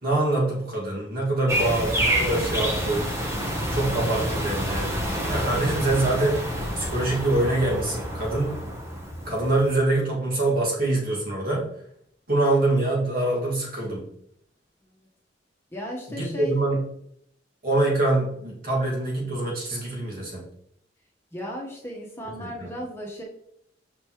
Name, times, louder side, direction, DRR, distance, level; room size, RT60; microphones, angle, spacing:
voice 1, 0.0-3.1 3.7-5.0 5.2-6.4 6.8-8.5 9.2-11.7 12.3-14.1 16.1-16.8 17.6-20.4 22.4-22.7, right 2 dB, 55° right, -3 dB, 2.0 m, -24 dB
sound 1, 1.5-9.7, equal, 15° right, 1.0 m, -28 dB
voice 2, 15.7-16.6 21.3-23.2, equal, 15° left, -4 dB, 1.2 m, -35 dB
6.1 x 5.3 x 3.1 m, 0.72 s
head